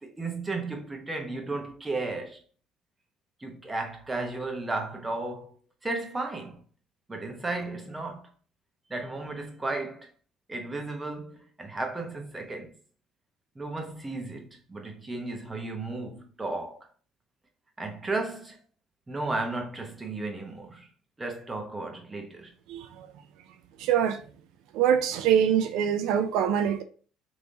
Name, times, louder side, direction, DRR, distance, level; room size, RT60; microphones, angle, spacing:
voice 1, 0.0-2.4 3.4-5.5 5.8-6.6 7.1-8.3 8.9-10.1 10.5-12.7 13.5-16.8 17.8-18.6 19.1-20.9 21.2-22.5, right 2 dB, 15° right, 1.1 m, -34 dB
voice 2, 22.7-23.1 23.8-24.2 24.7-26.8, right 9 dB, 80° right, 0.5 m, -24 dB
3.5 x 3.1 x 3.9 m
cardioid pair, 95°, 0 cm